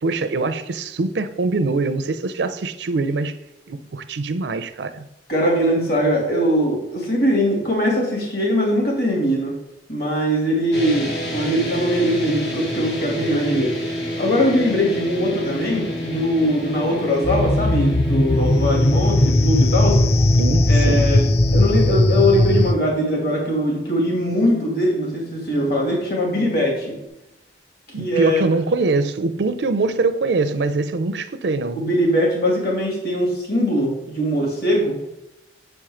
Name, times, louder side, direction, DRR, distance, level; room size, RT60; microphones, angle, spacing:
voice 1, 0.0-3.4 3.7-5.1 20.4-21.1 27.9-31.9, right 3 dB, 80° right, 0.5 m, -23 dB
voice 2, 5.3-9.5 9.9-13.7 14.2-20.0 20.7-21.2 21.5-27.0 28.0-28.4 31.7-35.0, equal, 55° left, 2.5 m, -21 dB
sound 1, 10.7-27.1, left 1 dB, 75° left, 1.9 m, -30 dB
sound 2, 17.2-22.7, left 2 dB, 35° left, 0.4 m, -17 dB
7.0 x 4.5 x 5.0 m
head